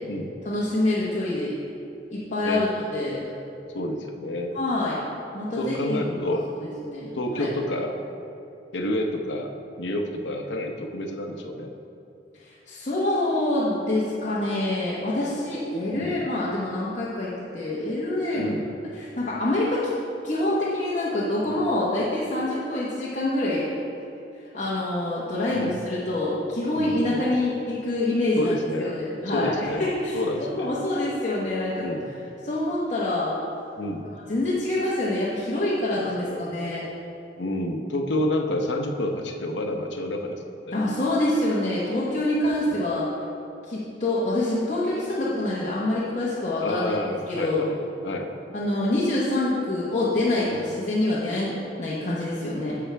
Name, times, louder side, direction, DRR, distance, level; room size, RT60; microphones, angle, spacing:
voice 1, 0.4-1.5 2.1-3.2 4.5-5.0 5.3-6.0 6.6-7.5 12.7-18.5 18.9-19.9 20.2-23.7 24.5-28.5 28.8-31.9 32.4-33.3 34.3-36.8 40.7-43.1 43.7-46.9 47.3-47.7 48.5-51.5 51.8-52.8, left 1 dB, 40° left, -8 dB, 1.1 m, -26 dB
voice 2, 3.7-4.6 5.6-6.5 7.1-8.0 8.7-9.5 9.8-11.7 15.9-16.2 18.4-18.6 21.5-21.6 25.5-25.7 26.8-27.3 28.4-28.9 29.3-29.9 30.1-30.7 31.8-32.1 33.8-34.1 36.0-36.5 37.4-40.4 40.7-40.8 42.6-42.8 46.6-47.8 48.0-48.3 50.4-50.6, left 1 dB, 90° left, 3 dB, 0.8 m, -29 dB
9.8 x 6.9 x 3.4 m, 2.7 s
head